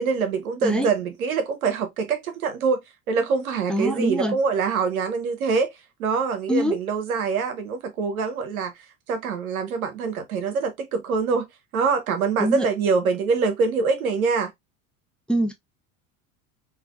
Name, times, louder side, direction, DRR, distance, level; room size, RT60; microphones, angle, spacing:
voice 1, 0.0-2.8 3.1-5.7 6.0-8.7 9.1-11.5 11.7-14.5, right 5 dB, 90° right, 0.9 m, -24 dB
voice 2, 3.7-4.4 6.5-6.8 12.4-12.7 15.3-15.5, equal, ahead, 0.4 m, -23 dB
3.3 x 2.6 x 2.3 m
hypercardioid pair, 80°, 41 cm